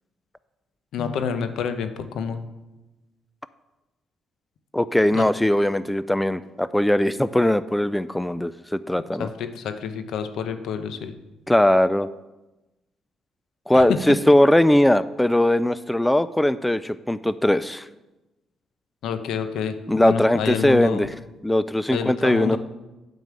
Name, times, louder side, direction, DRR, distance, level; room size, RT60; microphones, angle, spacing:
voice 1, 0.9-2.5 5.1-5.3 9.2-11.1 13.7-14.0 19.0-21.1 21.9-22.6, left 7 dB, 75° left, 9 dB, 0.9 m, -28 dB
voice 2, 4.7-9.3 11.5-12.1 13.7-17.9 19.9-21.1 21.4-22.6, left 1 dB, 5° left, 15 dB, 0.3 m, -20 dB
9.3 x 5.4 x 7.6 m, 1.1 s
cardioid pair, 90°, 0 cm